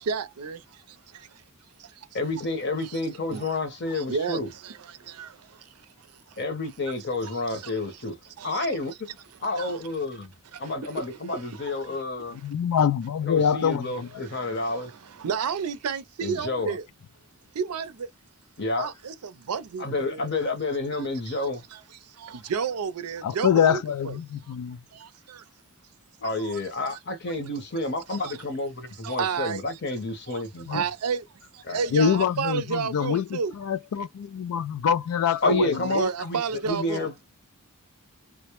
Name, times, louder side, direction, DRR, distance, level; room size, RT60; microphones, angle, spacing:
voice 1, 0.0-1.4 1.8-2.1 2.8-3.0 3.3-3.5 3.9-5.7 6.3-6.4 7.2-7.7 8.4-8.7 9.6-9.8 10.5-12.0 14.2-16.8 17.6-18.1 18.8-20.3 20.9-24.2 24.9-25.4 26.4-26.6 26.9-27.0 28.1-28.4 29.0-29.6 30.3-30.4 30.7-31.3 31.5-33.5 35.9-37.1, right 6 dB, 85° right, 0.5 m, -32 dB
voice 2, 2.1-4.5 6.4-8.2 8.4-9.1 9.4-10.3 10.6-12.4 13.2-14.9 16.2-16.8 18.6-18.9 19.8-21.6 26.2-30.8 31.7-31.8 35.4-37.2, left 2 dB, 50° left, 0.8 m, -29 dB
voice 3, 12.4-14.1 23.2-24.8 30.7-30.8 31.9-35.8, left 7 dB, 80° left, 0.3 m, -25 dB
2.2 x 2.0 x 2.9 m
head